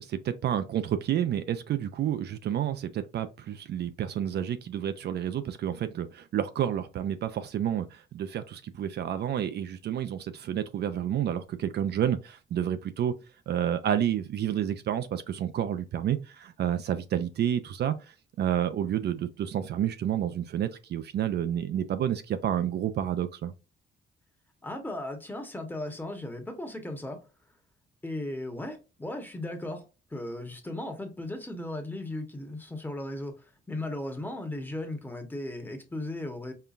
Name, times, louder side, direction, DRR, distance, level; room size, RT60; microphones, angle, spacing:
voice 1, 0.0-13.1 13.5-18.0 18.4-23.5, right 10 dB, 55° right, 0.4 m, -30 dB
voice 2, 24.6-27.2 28.0-29.8 30.1-36.5, left 1 dB, 10° left, 1.0 m, -36 dB
5.5 x 2.2 x 2.4 m
cardioid pair, 90°, 20 cm